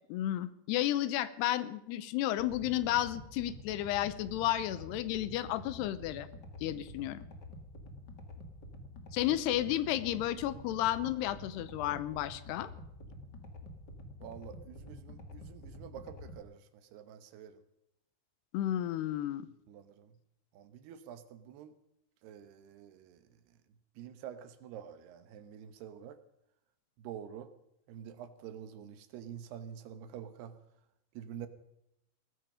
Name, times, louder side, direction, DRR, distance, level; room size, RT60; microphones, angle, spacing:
voice 1, 0.1-6.3 6.6-7.2 9.1-12.7 18.5-19.5, left 13 dB, 85° left, 15 dB, 3.0 m, -32 dB
sound 1, 2.4-16.4, left 1 dB, 40° left, 1.5 m, -48 dB
voice 2, 14.2-17.6 19.7-20.1 20.5-21.7 22.2-23.2 24.0-26.2 27.0-27.5 27.9-30.6 31.1-31.5, right 9 dB, 80° right, 11 dB, 3.2 m, -47 dB
19.0 x 14.5 x 5.1 m, 0.80 s
omnidirectional pair, 4.7 m